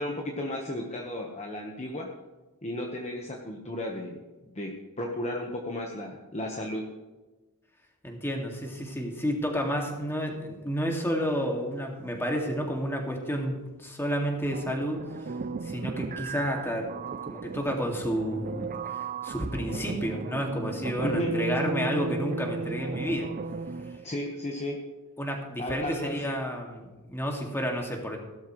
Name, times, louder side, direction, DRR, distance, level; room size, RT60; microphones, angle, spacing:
voice 1, 0.0-2.1 2.6-4.2 4.5-4.7 5.0-6.8 21.0-21.3 24.0-24.8 25.6-26.4, left 1 dB, 30° left, 0 dB, 1.3 m, -34 dB
voice 2, 8.0-15.3 15.6-16.9 17.3-18.7 19.2-23.3 25.2-28.2, equal, 10° left, 1 dB, 2.2 m, -30 dB
sound 1, 14.5-24.0, right 4 dB, 40° right, 0.4 m, -35 dB
16.5 x 13.0 x 3.2 m, 1.2 s
head